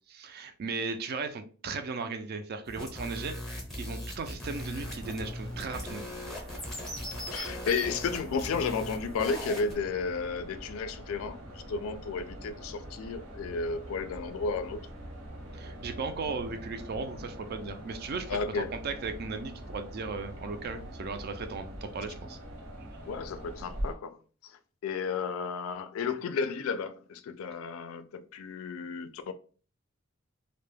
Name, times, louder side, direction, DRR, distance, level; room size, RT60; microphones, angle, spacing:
voice 1, 0.1-3.4 3.8-6.0 15.5-22.4, right 4 dB, 50° right, 0.3 m, -36 dB
sound 1, 2.7-9.7, left 1 dB, ahead, 0.6 m, -39 dB
sound 2, 4.5-23.9, equal, 80° right, 1.0 m, -43 dB
voice 2, 7.3-14.8 18.3-18.7 23.0-29.3, left 5 dB, 80° left, 0.3 m, -33 dB
2.2 x 2.1 x 3.2 m
head